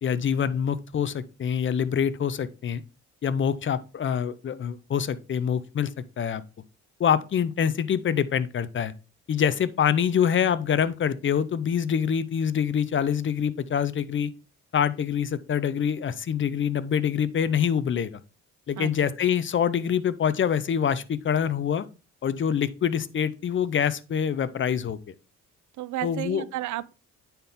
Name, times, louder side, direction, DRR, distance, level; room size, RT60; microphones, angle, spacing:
voice 1, 0.0-2.8 3.2-5.9 6.2-6.4 7.0-8.9 9.3-14.3 14.7-18.2 18.7-21.9 22.2-25.0 26.0-26.4, left 8 dB, 40° left, 0.7 m, -25 dB
voice 2, 18.8-19.1 25.8-27.0, right 15 dB, 75° right, 0.5 m, -33 dB
9.3 x 4.4 x 3.6 m
cardioid pair, 90°, 30 cm